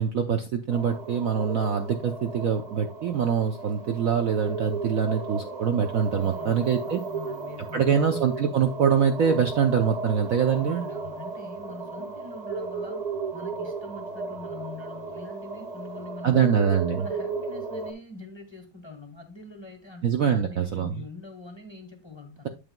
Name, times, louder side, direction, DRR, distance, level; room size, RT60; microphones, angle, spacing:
voice 1, 0.0-7.0 7.7-10.8 16.2-17.1 20.0-21.0, right 7 dB, 75° right, 6 dB, 0.7 m, -24 dB
sound 1, 0.7-17.9, right 4 dB, 30° right, 0.8 m, -35 dB
voice 2, 6.2-8.1 10.5-13.1 13.3-16.6 17.0-22.5, left 3 dB, 25° left, 5 dB, 0.6 m, -43 dB
8.8 x 8.0 x 2.2 m, 0.29 s
omnidirectional pair, 2.3 m